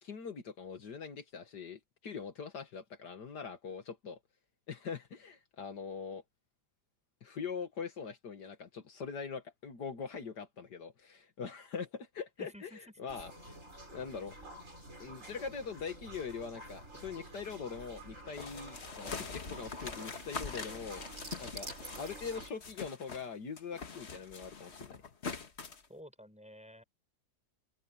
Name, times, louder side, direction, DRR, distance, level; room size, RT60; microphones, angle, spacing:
voice 1, 0.0-4.2 4.7-6.2 7.2-12.7 13.0-13.3 13.9-14.4 15.0-21.0 21.4-21.7 22.0-25.0, left 6 dB, 75° left, 2.2 m, -42 dB
voice 2, 12.4-12.8 13.2-13.3 25.9-26.8, equal, 5° right, 7.0 m, -52 dB
sound 1, 13.1-22.5, right 1 dB, 45° right, 5.7 m, -49 dB
sound 2, 18.4-23.3 23.6-25.8, left 5 dB, 40° left, 1.7 m, -44 dB
open air
omnidirectional pair, 1.8 m